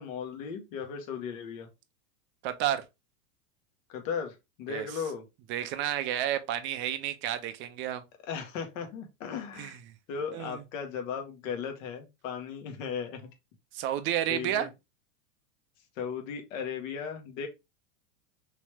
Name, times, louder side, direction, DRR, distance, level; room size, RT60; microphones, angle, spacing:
voice 1, 0.0-1.7 3.9-5.2 8.2-9.8 10.1-13.2 14.3-14.7 16.0-17.5, left 6 dB, 60° left, 1.3 m, -36 dB
voice 2, 2.4-2.8 4.7-4.9 5.5-8.0 9.6-9.7 10.3-10.6 13.7-14.7, right 11 dB, 30° right, 0.4 m, -31 dB
3.3 x 3.1 x 3.1 m
hypercardioid pair, 125°, 44 cm